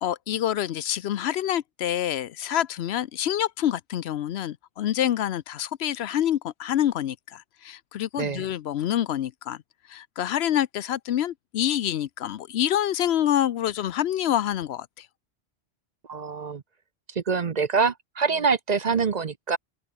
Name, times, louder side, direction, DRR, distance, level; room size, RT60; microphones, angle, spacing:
voice 1, 0.0-9.6 9.9-15.1, left 11 dB, 75° left, 0.9 m, -27 dB
voice 2, 16.1-16.6 17.2-19.6, right 5 dB, 45° right, 0.8 m, -25 dB
open air
omnidirectional pair, 1.1 m